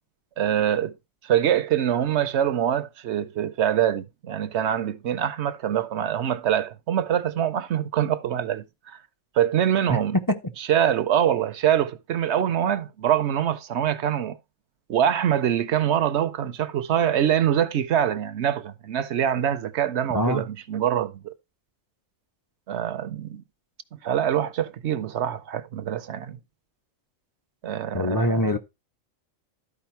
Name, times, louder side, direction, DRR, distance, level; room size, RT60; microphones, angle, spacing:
voice 1, 0.4-0.9 1.2-9.0 9.3-10.2 10.6-14.4 14.9-21.3 22.7-23.4 24.0-26.4 27.6-28.5, right 10 dB, 65° right, 0.9 m, -24 dB
voice 2, 20.1-20.5 27.9-28.6, equal, 25° left, 0.5 m, -23 dB
12.5 x 4.9 x 4.4 m
omnidirectional pair, 1.3 m